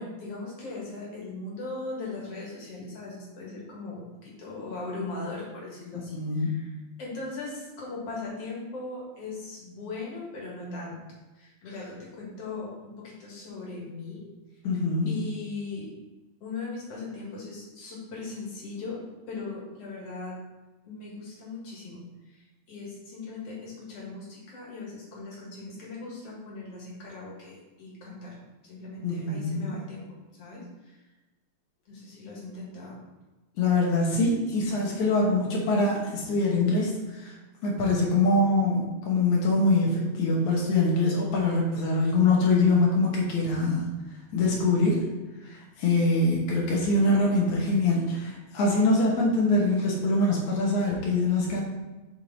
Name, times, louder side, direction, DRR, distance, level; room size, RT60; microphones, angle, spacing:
voice 1, 0.0-6.7 7.0-11.0 11.3-14.2 15.1-15.9 16.4-19.0 19.3-20.4 20.8-22.0 22.3-28.3 28.6-30.1 30.4-31.0 31.9-33.0, left 3 dB, 55° left, -4 dB, 2.7 m, -39 dB
voice 2, 6.1-6.6 14.6-15.1 29.0-29.8 33.6-37.3 37.6-43.9 44.3-45.1 45.4-51.6, left 2 dB, 80° left, -2 dB, 2.5 m, -24 dB
7.1 x 4.6 x 4.0 m, 1.1 s
omnidirectional pair, 3.3 m